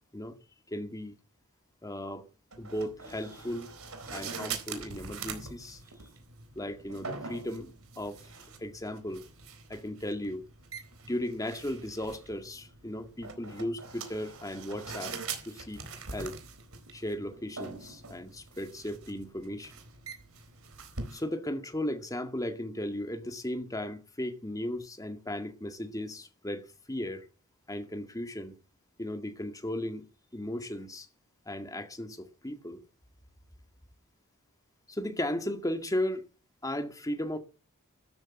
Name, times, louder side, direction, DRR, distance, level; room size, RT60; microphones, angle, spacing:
voice 1, 0.7-1.1 1.8-2.2 2.6-3.7 4.1-5.8 6.6-8.2 8.6-9.2 9.7-10.4 11.0-15.2 15.4-15.8 16.1-16.4 16.9-19.7 21.1-27.3 27.7-28.5 29.0-30.0 30.3-31.1 31.5-32.8 34.9-36.2 36.6-37.4, left 1 dB, 15° left, 2.1 m, -36 dB
sound 1, 2.5-21.2, right 5 dB, 70° right, 4.1 m, -43 dB
13.5 x 12.5 x 7.8 m
head